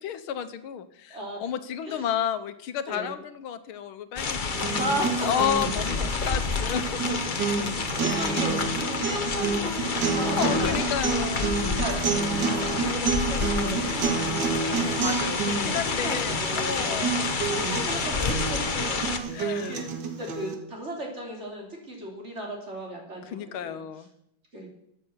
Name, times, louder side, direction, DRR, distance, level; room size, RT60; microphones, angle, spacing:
voice 1, 0.0-4.8 5.2-7.2 8.0-8.4 10.2-11.5 15.0-17.4 19.3-19.8 23.2-24.1, left 9 dB, 85° left, 11 dB, 1.7 m, -32 dB
voice 2, 2.9-3.2 4.7-5.3 7.6-10.8 11.0-11.3 11.8-19.9 20.2-23.8 24.5-24.7, equal, 30° right, -1 dB, 3.5 m, -36 dB
sound 1, 4.2-19.2, left 4 dB, 40° left, 0.7 m, -29 dB
sound 2, 4.5-20.6, right 5 dB, 60° right, 2.0 m, -29 dB
13.5 x 8.8 x 7.2 m, 0.76 s
omnidirectional pair, 2.2 m